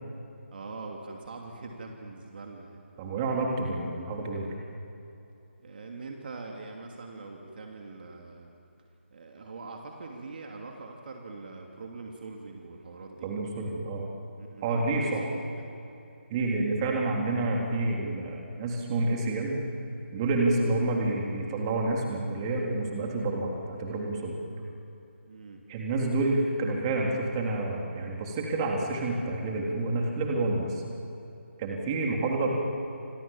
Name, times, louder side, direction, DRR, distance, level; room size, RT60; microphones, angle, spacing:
voice 1, 0.5-2.8 5.6-8.5 9.1-13.3 14.4-15.3 15.6-15.7 16.7-16.9 25.2-25.6, right 3 dB, 50° right, 1 dB, 2.8 m, -43 dB
voice 2, 3.0-4.5 13.2-14.0 14.6-15.3 16.3-19.6 20.1-24.4 25.7-30.8 31.6-32.5, right 2 dB, 25° right, 0 dB, 3.6 m, -28 dB
29.5 x 26.0 x 7.4 m, 2.8 s
figure-of-eight pair, 155°, 7 cm